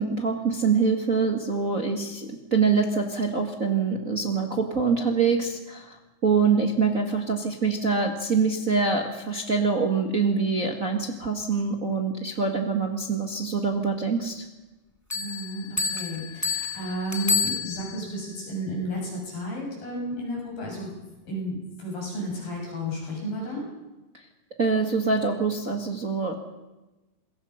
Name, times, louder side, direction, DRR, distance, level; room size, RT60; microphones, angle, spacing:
voice 1, 0.0-6.0 6.2-14.4 24.6-26.3, right 5 dB, 45° right, 3 dB, 1.1 m, -25 dB
voice 2, 15.1-23.7, equal, 65° left, -2 dB, 8.9 m, -33 dB
sound 1, 15.1-18.1, left 4 dB, 10° left, 1.0 m, -29 dB
27.0 x 22.0 x 5.8 m, 1.1 s
omnidirectional pair, 4.4 m